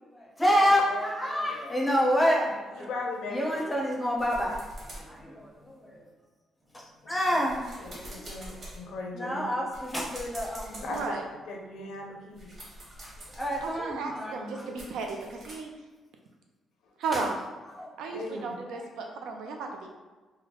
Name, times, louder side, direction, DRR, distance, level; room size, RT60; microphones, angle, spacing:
voice 1, 0.0-2.9 3.3-6.1 6.7-8.6 9.1-11.0 13.2-14.8 17.1-17.3 17.7-19.0, equal, 10° left, -3 dB, 0.5 m, -29 dB
voice 2, 0.5-1.1 2.7-3.6 7.8-9.5 10.8-11.2 11.5-12.5 18.1-18.6, left 3 dB, 65° left, 1 dB, 0.6 m, -38 dB
sound 1, 4.2-6.1 6.6-15.6, equal, 30° right, 0.9 m, -47 dB
voice 3, 10.9-11.3 13.6-15.7 17.0-17.4 18.0-19.9, right 4 dB, 90° right, 3 dB, 0.5 m, -34 dB
3.1 x 2.1 x 3.7 m, 1.3 s
cardioid pair, 180°, 0 cm